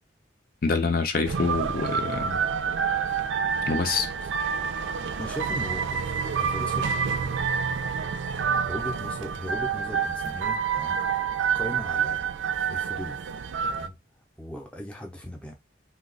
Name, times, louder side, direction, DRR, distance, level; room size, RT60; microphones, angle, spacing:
voice 1, 0.6-2.4 3.7-4.1, left 4 dB, 50° left, 0.5 m, -26 dB
sound 1, 1.2-13.9, right 6 dB, 80° right, 0.4 m, -28 dB
voice 2, 5.2-6.1 6.4-7.8 8.7-11.0 11.5-12.2 12.7-13.3 13.6-14.0 14.4-15.5, left 1 dB, 5° left, 0.6 m, -38 dB
2.8 x 2.3 x 3.9 m
head